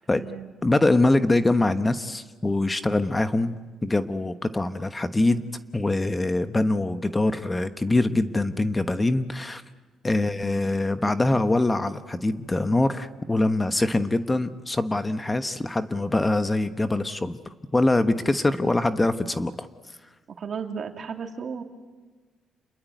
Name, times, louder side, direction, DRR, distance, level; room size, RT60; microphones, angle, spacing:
voice 1, 0.1-0.5 11.0-11.4 20.4-21.6, right 6 dB, 50° right, 4 dB, 3.0 m, -36 dB
voice 2, 0.6-5.4 5.7-9.6 10.0-17.4 17.7-19.7, left 2 dB, 20° left, 10 dB, 1.2 m, -23 dB
28.5 x 21.5 x 9.4 m, 1.3 s
cardioid pair, 90°, 0 cm